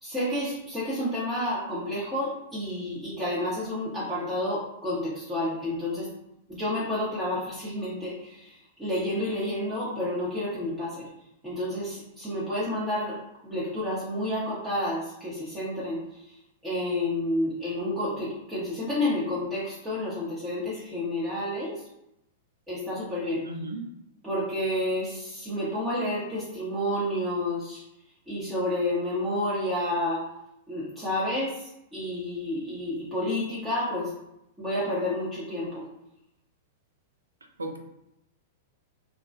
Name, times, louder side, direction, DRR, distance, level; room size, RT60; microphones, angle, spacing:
voice 1, 0.0-6.1 6.5-11.1 11.4-13.2 13.4-16.4 16.6-21.8 22.7-23.4 24.2-27.8 28.3-30.2 30.7-34.1 34.6-35.8, left 1 dB, 15° right, -9 dB, 0.8 m, -30 dB
voice 2, 23.4-23.8 37.6-37.8, right 2 dB, 85° right, 3 dB, 0.3 m, -34 dB
2.2 x 2.1 x 2.6 m, 0.84 s
hypercardioid pair, 100°, 0 cm